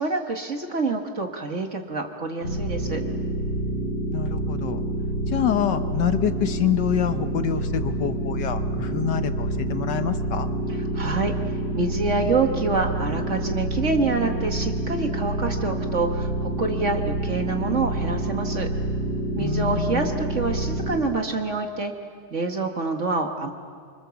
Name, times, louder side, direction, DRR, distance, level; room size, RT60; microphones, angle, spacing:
voice 1, 0.0-3.0 10.9-11.3 11.7-18.7 19.4-21.9 22.3-23.5, right 3 dB, 40° right, 4 dB, 1.7 m, -26 dB
sound 1, 2.4-21.0, right 1 dB, 40° left, 5.6 m, -27 dB
voice 2, 4.1-4.8 5.3-10.5 19.4-20.1, left 9 dB, 65° left, 9 dB, 1.5 m, -26 dB
27.5 x 25.0 x 7.1 m, 2.3 s
omnidirectional pair, 2.1 m